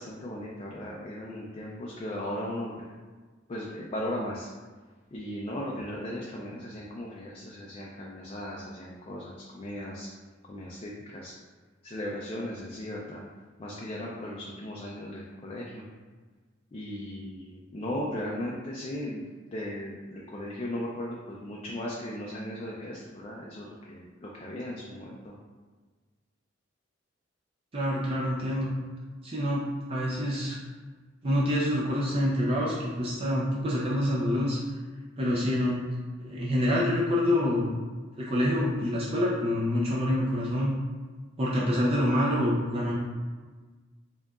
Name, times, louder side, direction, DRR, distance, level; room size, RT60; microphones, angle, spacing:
voice 1, 0.0-2.7 3.5-4.5 5.1-10.1 10.5-11.3 11.8-13.2 13.6-15.8 16.7-25.3, left 1 dB, 30° left, -4 dB, 0.4 m, -37 dB
voice 2, 27.7-28.7 29.2-30.6 31.2-34.6 35.2-35.8 36.2-37.7 38.2-40.7 41.4-42.9, left 1 dB, 30° right, -6 dB, 0.5 m, -26 dB
4.4 x 2.8 x 2.4 m, 1.4 s
head